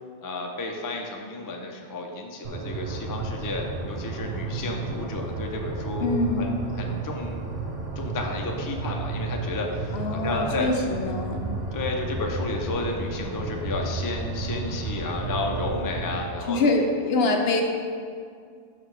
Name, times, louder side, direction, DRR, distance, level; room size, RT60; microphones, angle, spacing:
voice 1, 0.2-7.4 8.0-10.7 11.7-16.9, left 2 dB, 30° left, 1 dB, 0.4 m, -32 dB
sound 1, 2.4-16.2, right 3 dB, 40° right, 0.8 m, -32 dB
voice 2, 6.0-6.5 9.9-11.4 16.5-17.6, left 2 dB, 60° left, 3 dB, 0.9 m, -24 dB
5.8 x 5.3 x 4.7 m, 2.2 s
omnidirectional pair, 1.2 m